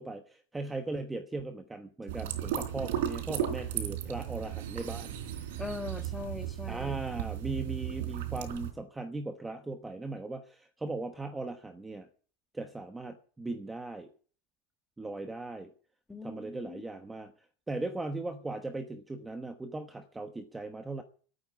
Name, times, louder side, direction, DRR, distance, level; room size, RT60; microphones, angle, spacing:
voice 1, 0.0-5.2 6.7-12.1 12.5-14.1 15.0-15.7 16.2-17.3 17.7-21.0, right 2 dB, 10° right, 7 dB, 1.0 m, -38 dB
sound 1, 2.1-8.7, right 10 dB, 85° right, 3.7 m, -35 dB
voice 2, 5.6-7.0 16.1-16.8, left 3 dB, 10° left, 8 dB, 1.6 m, -41 dB
12.0 x 9.1 x 9.6 m, 0.42 s
supercardioid pair, 160°, 0 cm